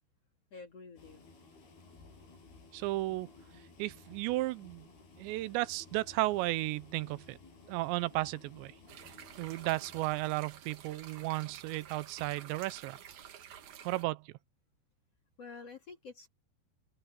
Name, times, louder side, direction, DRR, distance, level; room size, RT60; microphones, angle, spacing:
voice 1, 0.5-1.3 15.4-16.3, left 4 dB, 45° left, 2.7 m, -49 dB
sound 1, 1.0-10.1, left 3 dB, 60° left, 9.7 m, -57 dB
voice 2, 2.7-3.3 3.8-4.9 5.2-7.4 7.7-8.7 9.4-13.0 13.9-14.3, right 19 dB, 85° right, 2.9 m, -34 dB
sound 2, 8.9-14.0, right 9 dB, 60° right, 2.2 m, -51 dB
omnidirectional pair, 5.1 m